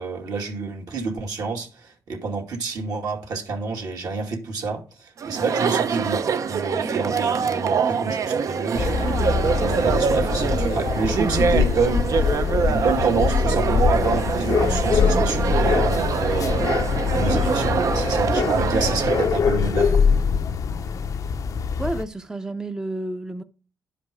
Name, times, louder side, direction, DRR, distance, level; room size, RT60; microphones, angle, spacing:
voice 1, 0.0-16.7 17.1-20.0, right 4 dB, 70° right, 2.3 m, -28 dB
Chatter, 5.2-19.3, right 6 dB, 55° right, 0.6 m, -24 dB
sound 1, 8.8-22.0, left 6 dB, 60° left, 0.6 m, -23 dB
voice 2, 21.8-23.4, right 2 dB, 10° right, 0.6 m, -30 dB
11.0 x 5.1 x 5.0 m
cardioid pair, 100°, 7 cm